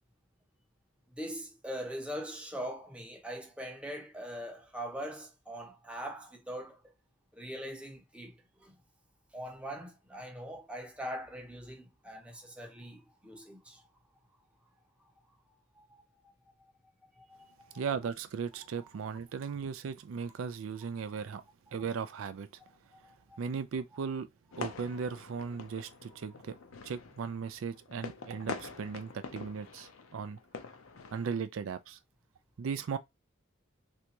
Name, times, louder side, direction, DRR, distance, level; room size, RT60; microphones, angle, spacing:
voice 1, 1.2-6.8 7.3-8.7 9.3-13.8 15.7-16.0 17.2-17.8 18.8-18.9 22.9-23.4, equal, 5° right, 0.7 m, -42 dB
voice 2, 17.7-21.4 21.7-22.5 23.4-24.3 24.6-26.6 26.8-30.4 31.1-32.0 32.6-33.0, right 6 dB, 75° right, 0.4 m, -37 dB
sound 1, 24.5-31.3, left 5 dB, 80° left, 0.6 m, -45 dB
3.4 x 2.6 x 2.9 m
head